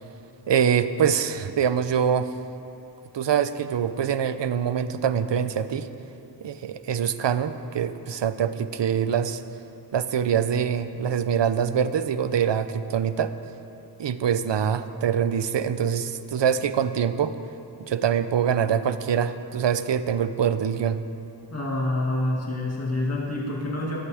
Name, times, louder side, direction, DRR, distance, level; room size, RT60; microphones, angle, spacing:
voice 1, 0.5-2.3 3.1-5.9 6.4-9.4 9.9-13.3 14.0-17.3 17.8-21.0, right 8 dB, 75° right, 12 dB, 0.7 m, -24 dB
voice 2, 21.5-24.0, left 1 dB, 35° left, -3 dB, 2.3 m, -27 dB
20.5 x 14.0 x 3.5 m, 2.7 s
wide cardioid pair, 105°, 43 cm